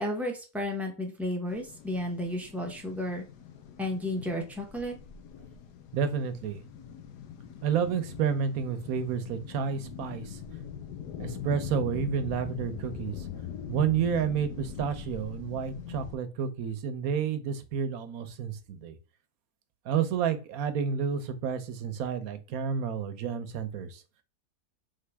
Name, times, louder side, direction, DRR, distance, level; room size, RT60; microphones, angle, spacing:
voice 1, 0.0-3.2 3.8-5.0, left 1 dB, ahead, 1 dB, 0.4 m, -32 dB
sound 1, 1.5-16.2, left 8 dB, 90° left, 1.2 m, -42 dB
voice 2, 5.9-6.6 7.6-10.4 11.2-13.3 13.7-19.0 19.8-24.0, right 7 dB, 65° right, 10 dB, 1.0 m, -30 dB
3.7 x 3.5 x 3.4 m, 0.32 s
omnidirectional pair, 1.7 m